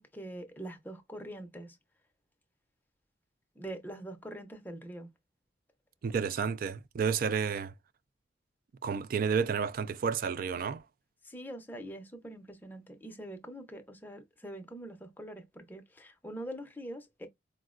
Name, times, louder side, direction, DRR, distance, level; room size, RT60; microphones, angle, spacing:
voice 1, 0.0-1.8 3.6-5.1 11.2-17.3, right 1 dB, 10° left, 0.5 m, -44 dB
voice 2, 6.0-7.7 8.8-10.8, right 6 dB, 50° right, 0.3 m, -31 dB
4.3 x 2.0 x 2.3 m
head